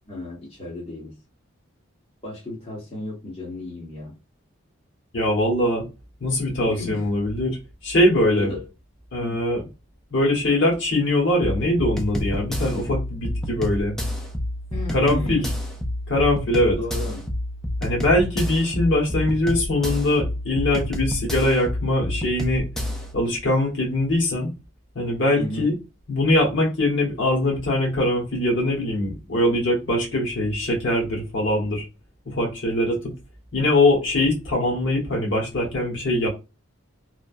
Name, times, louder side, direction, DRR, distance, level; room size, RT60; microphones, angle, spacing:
voice 1, 0.1-1.2 2.2-4.1 6.6-7.0 8.4-8.7 9.2-9.4 14.7-15.5 16.7-17.2 25.3-25.7, left 1 dB, 30° left, 1.0 m, -34 dB
voice 2, 5.1-5.8 6.2-7.6 7.8-8.5 9.1-9.6 10.1-14.0 14.9-15.5 16.1-16.8 17.8-22.7 23.1-24.5 24.9-25.7 26.1-31.9 32.3-33.1 33.5-36.3, left 1 dB, 60° left, 1.1 m, -22 dB
sound 1, 11.4-23.1, left 1 dB, ahead, 0.3 m, -29 dB
3.1 x 2.0 x 2.4 m
head